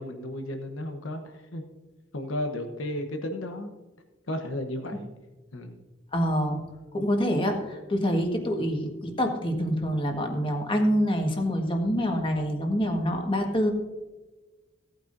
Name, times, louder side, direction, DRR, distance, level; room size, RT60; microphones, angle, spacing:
voice 1, 0.0-1.6 2.1-3.7 4.3-5.1 5.5-5.8, left 1 dB, 85° left, 5 dB, 1.0 m, -33 dB
voice 2, 6.1-6.6 6.9-13.7, equal, 25° left, 3 dB, 1.6 m, -26 dB
17.0 x 9.1 x 2.7 m, 1.2 s
head